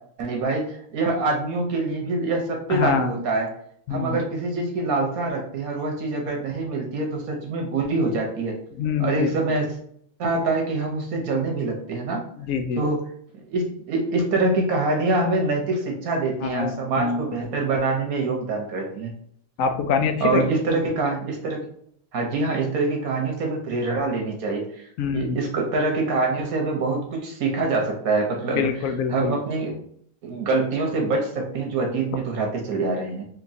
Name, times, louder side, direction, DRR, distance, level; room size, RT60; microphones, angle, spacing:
voice 1, 0.2-0.6 0.9-3.5 3.9-8.6 9.0-9.7 10.2-12.3 12.8-13.0 13.3-19.1 20.2-21.7 22.1-24.9 25.1-28.7 29.1-29.7 30.2-33.2, right 3 dB, 80° right, 1 dB, 1.4 m, -25 dB
voice 2, 2.7-3.1 3.9-4.2 8.8-9.3 12.4-12.8 16.4-17.2 19.6-20.5 25.0-25.4 28.5-29.4, left 6 dB, 70° left, 6 dB, 0.9 m, -25 dB
4.4 x 2.8 x 2.7 m, 0.65 s
omnidirectional pair, 1.5 m